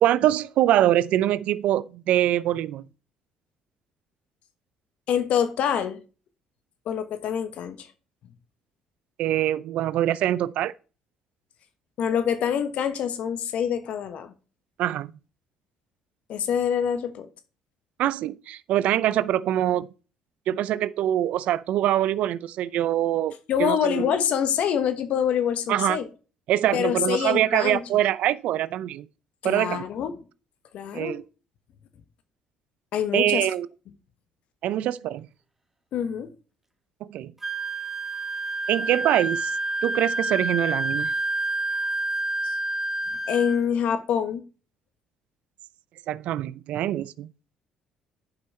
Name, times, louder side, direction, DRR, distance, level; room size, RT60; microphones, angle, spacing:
voice 1, 0.0-2.8 9.2-10.7 14.8-15.1 18.0-19.9 20.5-24.0 25.7-26.0 26.5-29.1 29.4-29.8 30.9-31.2 33.1-33.7 34.6-35.3 37.1-37.3 38.7-39.5 39.8-41.1 46.1-47.3, right 12 dB, 70° right, 0.5 m, -24 dB
voice 2, 5.1-6.0 6.9-7.9 12.0-14.3 16.3-17.3 23.5-26.1 26.7-27.8 29.4-30.2 30.7-31.2 32.9-33.5 35.9-36.3 43.3-44.4, left 8 dB, 65° left, 1.3 m, -25 dB
Wind instrument woodwind instrument, 37.4-43.6, right 2 dB, 15° right, 1.6 m, -28 dB
10.5 x 5.6 x 4.3 m
supercardioid pair, 65°, 2 cm